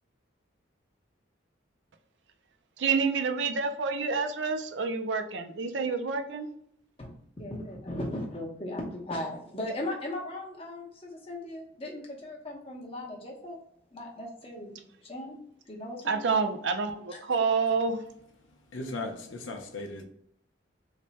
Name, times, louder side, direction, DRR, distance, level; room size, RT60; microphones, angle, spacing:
voice 1, 2.8-6.5 16.1-18.0, right 5 dB, 65° right, 0.4 m, -28 dB
voice 2, 7.4-13.6 13.9-14.8 15.0-15.4 15.7-16.3 17.1-17.2, left 1 dB, 30° left, 0.8 m, -37 dB
voice 3, 18.7-20.0, left 2 dB, 85° left, 0.6 m, -37 dB
3.3 x 2.1 x 4.0 m
head